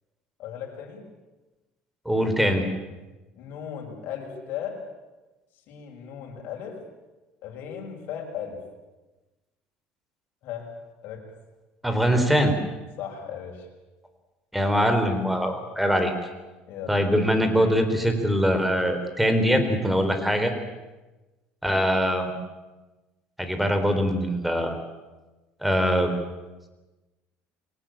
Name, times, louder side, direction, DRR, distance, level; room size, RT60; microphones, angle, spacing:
voice 1, 0.4-1.1 3.3-4.8 5.7-6.8 7.4-8.6 10.4-10.7 11.0-11.2 13.0-13.7 16.7-17.0, left 8 dB, 65° left, 2 dB, 6.3 m, -36 dB
voice 2, 2.1-2.7 11.8-12.5 14.5-16.1 16.9-20.5 21.6-22.3 23.4-24.7 25.6-26.1, equal, 5° right, 7 dB, 3.6 m, -22 dB
23.0 x 18.0 x 8.8 m, 1.1 s
cardioid pair, 125°, 4 cm